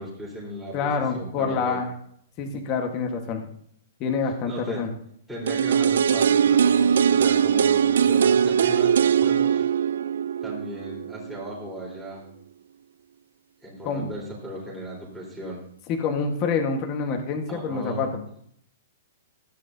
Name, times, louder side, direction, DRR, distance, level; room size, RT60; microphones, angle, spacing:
voice 1, 0.0-1.8 4.5-4.8 5.3-9.7 10.4-12.3 13.6-15.6 17.5-18.2, right 1 dB, 5° right, -6 dB, 3.6 m, -36 dB
voice 2, 0.7-1.9 2.4-3.5 4.0-4.9 13.8-14.1 15.9-18.1, left 5 dB, 25° left, 3 dB, 1.3 m, -27 dB
sound 1, 5.5-11.4 11.7-11.8, right 8 dB, 75° right, 0.3 m, -21 dB
16.0 x 9.3 x 2.7 m, 0.67 s
hypercardioid pair, 170°, 0 cm